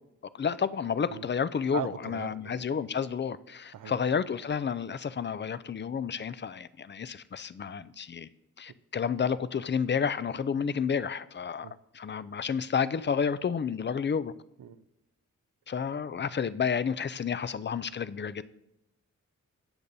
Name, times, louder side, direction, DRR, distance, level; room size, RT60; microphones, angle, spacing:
voice 1, 0.3-8.3 8.6-11.7 11.9-14.3 15.7-18.4, left 6 dB, 35° left, 0.4 m, -30 dB
voice 2, 1.7-2.6 3.7-4.0 11.6-11.7 14.6-14.8, right 9 dB, 80° right, 0.6 m, -39 dB
15.0 x 8.6 x 2.7 m
wide cardioid pair, 100°, 31 cm